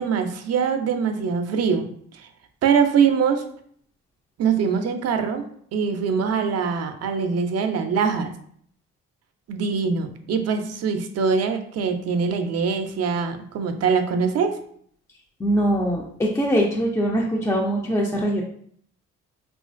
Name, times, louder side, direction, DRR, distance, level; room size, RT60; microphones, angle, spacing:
voice 1, 0.0-1.9 2.6-3.4 4.4-5.4 5.7-8.3 9.5-14.6, right 6 dB, 55° right, 7 dB, 0.4 m, -23 dB
voice 2, 15.4-16.0 16.3-18.4, equal, 10° left, -2 dB, 0.3 m, -22 dB
3.0 x 2.4 x 2.4 m, 0.62 s
cardioid pair, 90°, 30 cm